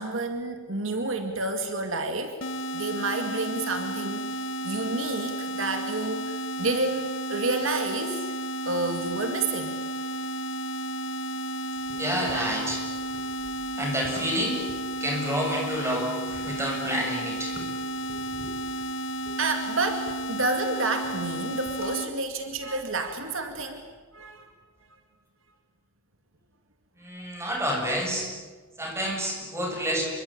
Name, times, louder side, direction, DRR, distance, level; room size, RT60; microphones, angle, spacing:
voice 1, 0.0-2.4 2.7-8.3 8.7-9.7 19.4-23.8 24.1-24.5, right 2 dB, 65° right, 6 dB, 2.3 m, -30 dB
sound 1, 2.4-22.1, right 1 dB, 60° left, 1.6 m, -33 dB
voice 2, 11.9-12.8 13.8-14.7 15.0-17.8 18.1-18.5 19.3-19.4 27.0-28.3 28.8-30.0, equal, 15° right, 1 dB, 7.1 m, -29 dB
27.0 x 24.0 x 8.8 m, 1.4 s
head